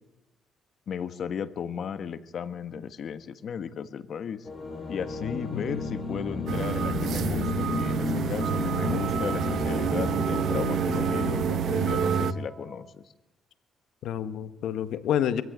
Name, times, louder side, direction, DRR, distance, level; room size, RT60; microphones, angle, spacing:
voice 1, 0.9-4.5 4.9-13.0, left 7 dB, 60° left, 11 dB, 1.4 m, -35 dB
sound 1, 4.4-11.4, left 3 dB, 35° left, 5.8 m, -32 dB
voice 2, 5.2-5.8 14.0-15.4, left 10 dB, 80° left, 11 dB, 1.5 m, -29 dB
sound 2, 6.5-12.3, right 7 dB, 70° right, 1.1 m, -28 dB
Wind instrument woodwind instrument, 7.7-12.9, right 2 dB, 45° right, 2.2 m, -45 dB
22.5 x 16.0 x 9.5 m, 0.96 s
cardioid pair, 90°, 0 cm